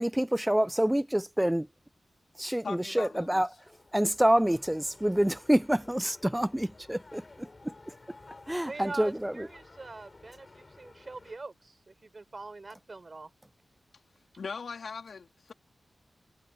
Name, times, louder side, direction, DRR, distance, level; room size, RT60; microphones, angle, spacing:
voice 1, 0.0-1.7 2.4-3.5 3.9-7.7 8.5-9.5, right 1 dB, 5° right, 0.3 m, -27 dB
voice 2, 2.6-3.4 14.4-15.5, left 5 dB, 65° left, 3.2 m, -39 dB
sound 1, 3.6-11.4, left 3 dB, 30° left, 6.6 m, -54 dB
voice 3, 8.7-13.3, right 3 dB, 30° right, 4.7 m, -43 dB
wide cardioid pair, 170°, 0 cm